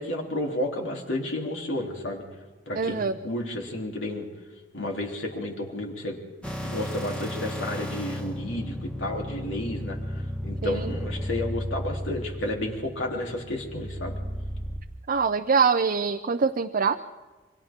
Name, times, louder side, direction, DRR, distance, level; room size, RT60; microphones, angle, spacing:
voice 1, 0.0-2.2 2.7-4.2 4.7-6.2 6.6-14.2, left 1 dB, 85° left, 0 dB, 3.3 m, -32 dB
voice 2, 2.8-3.1 10.6-10.9 15.1-17.0, right 5 dB, 45° right, 7 dB, 0.5 m, -24 dB
sound 1, 6.4-14.8, equal, 5° left, 1.5 m, -34 dB
29.0 x 24.0 x 3.7 m, 1.3 s
head